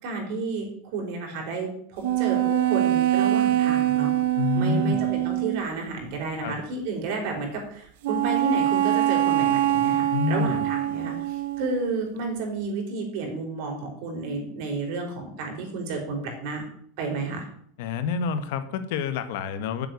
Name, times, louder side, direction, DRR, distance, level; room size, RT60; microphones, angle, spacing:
voice 1, 0.0-4.1 4.5-16.6 17.0-17.4, right 3 dB, 55° right, 1 dB, 5.2 m, -31 dB
sound 1, 2.0-5.7 8.0-12.0, right 13 dB, 70° right, 0.7 m, -24 dB
voice 2, 4.4-5.1 6.4-6.6 10.1-10.6 17.8-19.9, left 6 dB, 65° left, 11 dB, 1.5 m, -27 dB
9.6 x 7.8 x 9.5 m, 0.65 s
supercardioid pair, 165°, 0 cm